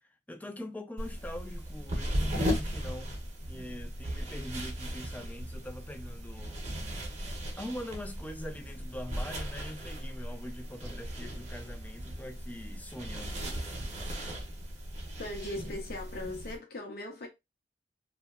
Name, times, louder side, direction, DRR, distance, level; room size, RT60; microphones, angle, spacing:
voice 1, 0.0-6.6 7.6-13.5, left 1 dB, 10° left, 0.3 m, -43 dB
sound 1, 1.0-16.6, equal, 40° right, 0.7 m, -37 dB
voice 2, 15.2-17.3, left 1 dB, 55° left, 0.6 m, -39 dB
2.7 x 2.1 x 2.2 m
head